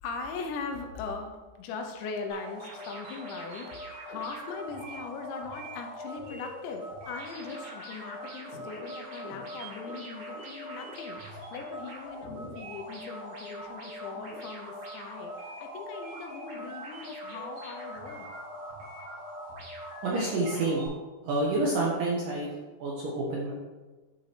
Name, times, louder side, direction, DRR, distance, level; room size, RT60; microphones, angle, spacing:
voice 1, 0.0-3.7 4.0-18.3, left 4 dB, 85° left, 4 dB, 3.0 m, -40 dB
sound 1, 2.3-20.9, equal, 55° right, 4.2 m, -42 dB
voice 2, 20.0-20.9 21.2-22.5 22.8-23.5, right 2 dB, 70° right, -5 dB, 2.1 m, -28 dB
11.5 x 4.6 x 3.3 m, 1.3 s
omnidirectional pair, 5.2 m